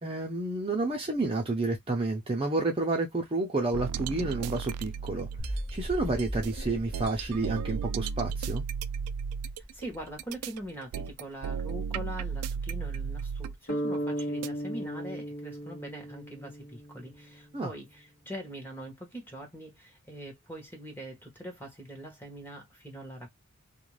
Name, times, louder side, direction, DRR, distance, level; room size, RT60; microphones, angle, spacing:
voice 1, 0.0-8.6 17.5-17.7, right 2 dB, 25° right, 0.6 m, -30 dB
sound 1, 3.7-5.7 6.2-14.5, right 6 dB, 85° right, 0.3 m, -35 dB
sound 2, 5.4-11.5, equal, 25° left, 0.7 m, -39 dB
voice 2, 9.7-23.3, right 1 dB, 10° left, 1.0 m, -43 dB
sound 3, 13.7-17.6, right 1 dB, 55° left, 1.0 m, -36 dB
2.5 x 2.2 x 3.1 m
head